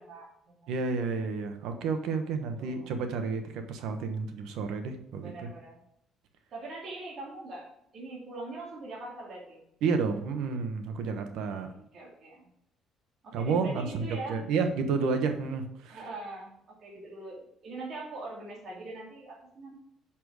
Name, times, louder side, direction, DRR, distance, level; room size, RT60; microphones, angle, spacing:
voice 1, 0.0-0.7 2.6-2.9 5.2-5.8 6.5-7.7 7.9-9.6 11.5-12.5 13.2-14.4 15.9-19.7, right 2 dB, 55° right, -3 dB, 2.5 m, -42 dB
voice 2, 0.7-5.5 9.8-11.7 13.3-16.0, right 5 dB, 80° right, 7 dB, 1.0 m, -31 dB
6.4 x 5.9 x 4.8 m, 0.77 s
cardioid pair, 110°, 0 cm